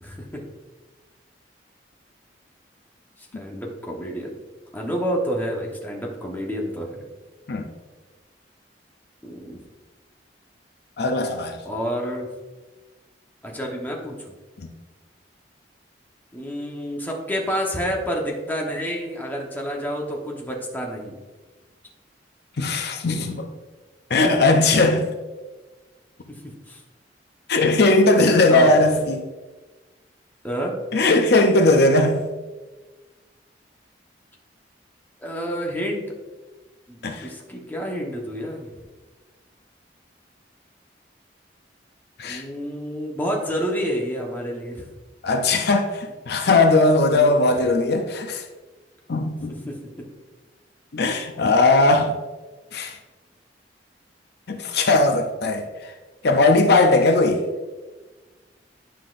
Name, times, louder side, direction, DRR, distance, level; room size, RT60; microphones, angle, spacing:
voice 1, 0.0-0.4 3.3-4.3 4.7-7.1 9.2-9.6 11.6-12.3 13.4-14.3 16.3-21.2 24.2-24.7 26.3-26.8 28.5-28.8 30.4-30.8 35.2-36.0 36.9-38.7 42.2-44.9 47.1-47.5 49.7-49.8, equal, 10° left, -1 dB, 1.0 m, -29 dB
voice 2, 11.0-11.6 14.6-14.7 22.6-23.5 24.1-25.1 27.5-29.2 30.9-32.2 37.0-37.3 42.2-42.4 45.2-48.5 49.1-49.6 50.9-52.2 52.7-53.0 54.5-55.9 56.2-57.4, left 2 dB, 65° left, 5 dB, 0.6 m, -19 dB
10.0 x 5.7 x 2.5 m, 1.2 s
head